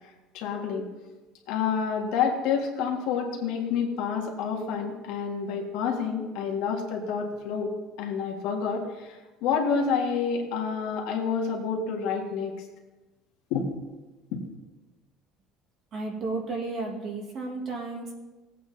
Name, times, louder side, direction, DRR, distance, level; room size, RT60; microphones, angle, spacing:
voice 1, 0.3-0.9 1.5-7.7 8.0-12.5 13.5-13.7 14.3-14.4, left 6 dB, 75° left, 1 dB, 1.8 m, -28 dB
voice 2, 15.9-18.1, right 3 dB, 35° right, 0 dB, 1.8 m, -33 dB
18.0 x 8.4 x 2.8 m, 1.2 s
cardioid pair, 170°, 0 cm